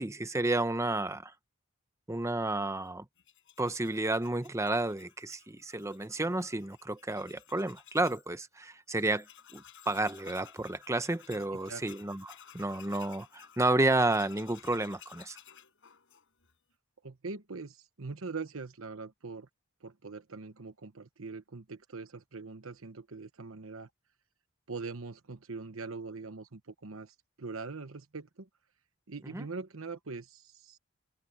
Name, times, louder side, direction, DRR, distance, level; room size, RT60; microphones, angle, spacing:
voice 1, 0.0-1.3 2.1-3.0 3.6-9.3 9.5-15.4 29.3-29.5, right 2 dB, 15° right, 0.9 m, -31 dB
Tools, 3.2-8.3 8.6-8.7 9.0-16.6, left 9 dB, 65° left, 4.8 m, -55 dB
voice 2, 17.0-19.5 19.8-23.9 24.7-28.5 29.1-30.8, right 4 dB, 75° right, 1.1 m, -42 dB
open air
head